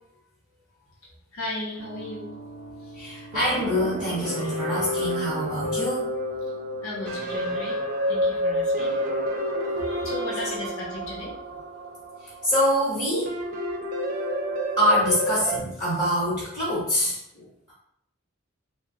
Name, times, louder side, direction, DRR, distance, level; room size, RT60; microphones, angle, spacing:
voice 1, 1.3-2.3 2.8-3.2 6.8-7.8 8.1-9.0 9.8-11.6, left 1 dB, 75° left, -4 dB, 0.7 m, -36 dB
sound 1, 1.8-15.6, equal, 40° right, 0.4 m, -30 dB
voice 2, 2.9-6.1 12.2-13.4 14.8-17.7, equal, 35° left, -9 dB, 0.8 m, -25 dB
2.7 x 2.1 x 2.5 m, 0.75 s
head